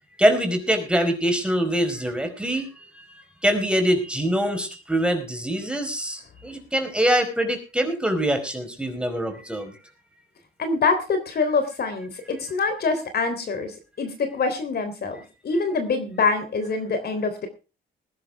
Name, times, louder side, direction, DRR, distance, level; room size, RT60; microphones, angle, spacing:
voice 1, 0.2-9.7, equal, 5° right, 6 dB, 4.7 m, -24 dB
voice 2, 10.6-15.2 15.4-17.5, left 4 dB, 55° left, 8 dB, 3.6 m, -25 dB
20.5 x 11.0 x 3.6 m, 0.32 s
cardioid pair, 90°, 20 cm